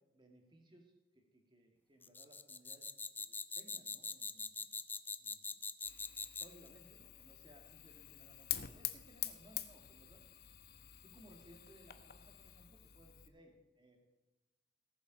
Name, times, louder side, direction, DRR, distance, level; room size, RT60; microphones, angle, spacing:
voice 1, 0.1-4.7 5.2-5.5 6.3-10.2 11.0-14.0, right 1 dB, 25° right, 2 dB, 2.2 m, -63 dB
sound 1, 2.0-6.7, left 4 dB, 10° left, 0.3 m, -43 dB
Fire, 5.8-13.3, left 13 dB, 55° left, 0.8 m, -47 dB
18.5 x 7.2 x 5.3 m, 1.1 s
head